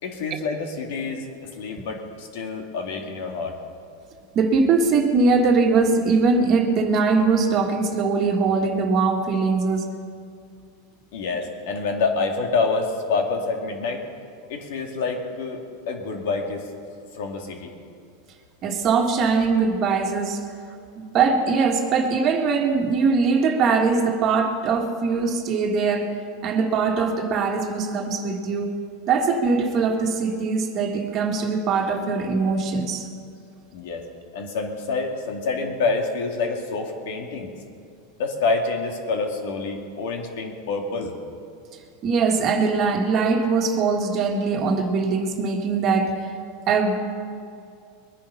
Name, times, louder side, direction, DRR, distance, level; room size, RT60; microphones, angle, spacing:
voice 1, 0.0-3.6 11.1-14.0 14.5-15.6 15.9-16.7 17.1-17.7 33.7-34.0 34.3-37.5 38.2-41.1, left 4 dB, 70° left, 2 dB, 2.4 m, -27 dB
voice 2, 4.3-9.9 18.6-20.5 21.0-28.8 29.1-33.1 42.0-46.2 46.7-47.0, right 4 dB, 35° right, 3 dB, 1.7 m, -21 dB
21.5 x 10.5 x 5.7 m, 2.4 s
supercardioid pair, 145°, 0 cm